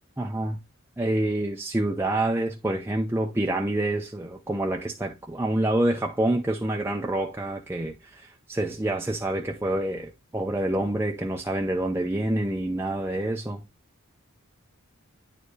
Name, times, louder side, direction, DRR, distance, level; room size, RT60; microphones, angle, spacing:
voice 1, 0.2-0.6 1.0-13.6, right 1 dB, 10° right, 0.5 m, -27 dB
9.7 x 4.6 x 3.1 m
head